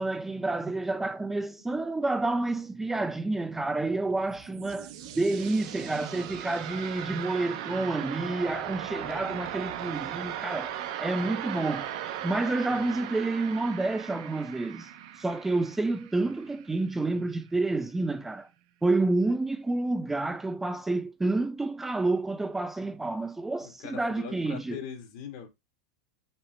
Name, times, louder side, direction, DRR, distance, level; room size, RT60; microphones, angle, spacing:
voice 1, 0.0-11.9 12.2-14.9 15.2-18.5 18.8-24.8, right 2 dB, 10° right, 0.3 m, -29 dB
sound 1, 4.1-16.9, right 11 dB, 65° right, 0.7 m, -38 dB
voice 2, 23.6-25.5, left 8 dB, 60° left, 1.6 m, -41 dB
5.9 x 2.0 x 4.3 m
supercardioid pair, 125°, 3 cm